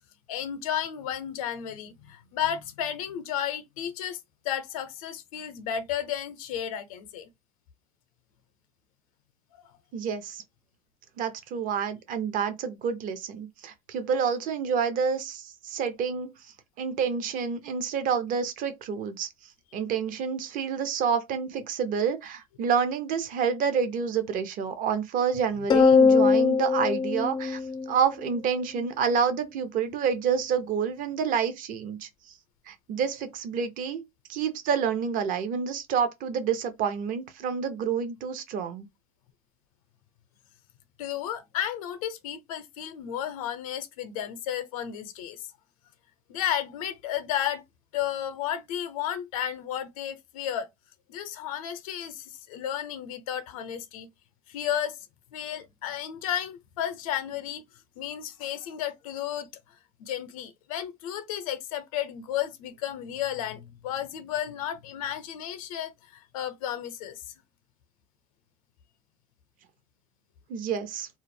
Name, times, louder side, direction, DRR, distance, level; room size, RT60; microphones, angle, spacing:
voice 1, 0.3-7.3 9.5-9.7 41.0-45.5 46.3-47.6 47.9-50.7 51.1-54.1 54.5-55.1 55.3-57.6 58.0-59.5 60.0-67.2, left 10 dB, 80° left, 0.6 m, -33 dB
voice 2, 9.9-10.4 11.2-16.3 16.8-19.3 19.7-27.6 27.9-32.1 32.7-34.0 34.3-38.9 70.5-71.1, right 6 dB, 50° right, 0.7 m, -28 dB
sound 1, 25.7-28.3, left 5 dB, 25° left, 0.4 m, -21 dB
2.3 x 2.0 x 3.2 m
hypercardioid pair, 90°, 18 cm